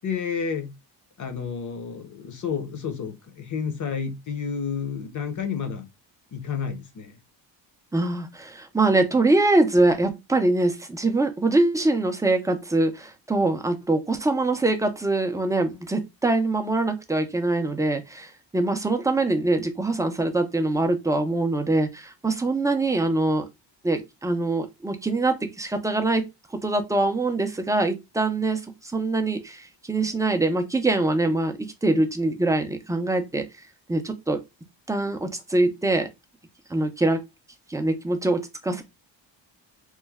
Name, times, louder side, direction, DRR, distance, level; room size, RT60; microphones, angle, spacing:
voice 1, 0.0-0.7 1.2-5.9 6.3-7.2, left 6 dB, 40° left, 0.7 m, -30 dB
voice 2, 7.9-23.5 23.8-26.2 26.6-33.4 33.9-34.4 34.9-36.1 36.7-37.2 37.7-38.8, right 2 dB, 10° right, 0.3 m, -23 dB
3.1 x 2.1 x 3.4 m
cardioid pair, 140°, 45 cm